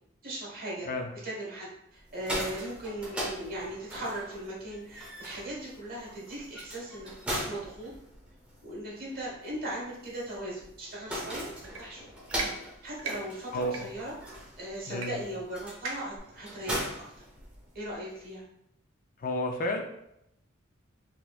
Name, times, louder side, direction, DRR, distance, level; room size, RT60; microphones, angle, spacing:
voice 1, 0.2-0.9 1.2-7.9 8.6-12.0 12.8-14.1 14.6-17.0 17.7-18.4, right 1 dB, 45° right, -5 dB, 1.3 m, -38 dB
sound 1, 2.0-17.9, equal, 5° right, 0.7 m, -40 dB
sound 2, 11.6-11.8 12.3-12.5 13.0-13.2 13.7-13.8 15.0-15.1 15.3-15.4 15.8-16.2, right 4 dB, 70° right, 0.6 m, -36 dB
voice 2, 13.5-13.9 14.9-15.2 19.2-19.8, left 1 dB, 40° left, 3 dB, 0.4 m, -31 dB
4.0 x 2.9 x 2.3 m, 0.79 s
head